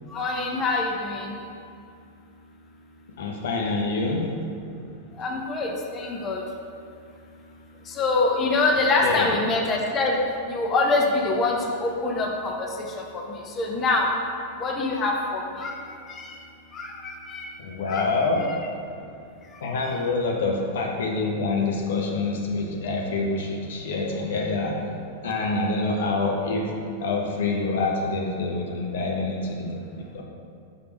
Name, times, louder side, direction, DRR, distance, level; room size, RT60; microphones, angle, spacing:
voice 1, 0.1-1.3 5.2-6.4 8.0-10.2 10.5-12.5 13.6-14.1 14.6-15.7 16.1-16.2 16.7-17.5 17.9-18.1, left 3 dB, 25° left, 0 dB, 0.9 m, -24 dB
voice 2, 3.2-4.3 9.0-9.3 17.6-18.5 19.6-24.8 25.2-26.7 27.0-30.2, left 3 dB, 60° left, 0 dB, 0.9 m, -26 dB
6.7 x 5.1 x 4.6 m, 2.4 s
figure-of-eight pair, 90°, 0 cm